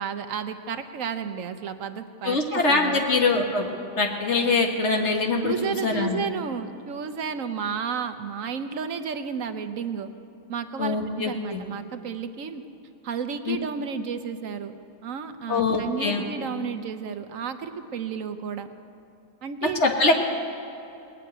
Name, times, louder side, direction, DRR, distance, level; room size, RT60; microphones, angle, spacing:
voice 1, 0.0-3.0 5.4-10.1 10.5-12.6 13.0-14.7 15.0-18.7 19.4-20.1, right 6 dB, 65° right, 9 dB, 1.2 m, -32 dB
voice 2, 2.2-3.7 4.0-6.3 10.8-11.6 13.5-13.6 15.5-16.2 19.8-20.1, left 3 dB, 50° left, 2 dB, 1.7 m, -23 dB
19.0 x 8.1 x 9.3 m, 2.8 s
omnidirectional pair, 1.5 m